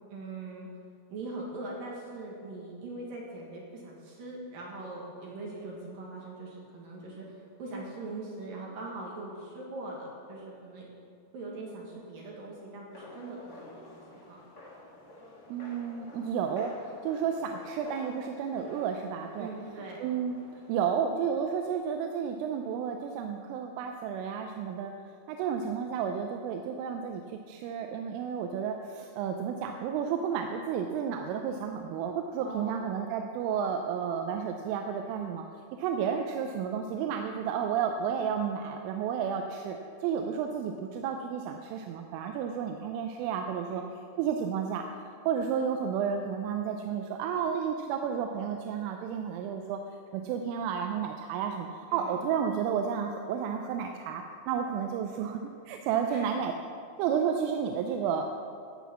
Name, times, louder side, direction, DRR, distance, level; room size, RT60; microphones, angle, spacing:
voice 1, 0.1-0.7 1.1-10.9 11.3-14.4 19.4-20.0 32.4-33.1 43.7-43.8 51.9-52.1 56.1-56.3, right 2 dB, 60° right, -3 dB, 2.6 m, -41 dB
sound 1, 12.9-20.7, left 1 dB, 90° left, 0.8 m, -50 dB
voice 2, 15.5-19.5 20.0-20.4 20.7-24.9 25.3-27.2 27.5-35.5 35.8-43.8 44.2-49.8 50.1-56.5 57.0-58.3, right 7 dB, 80° right, 4 dB, 3.1 m, -32 dB
15.5 x 6.0 x 7.2 m, 2.4 s
omnidirectional pair, 5.9 m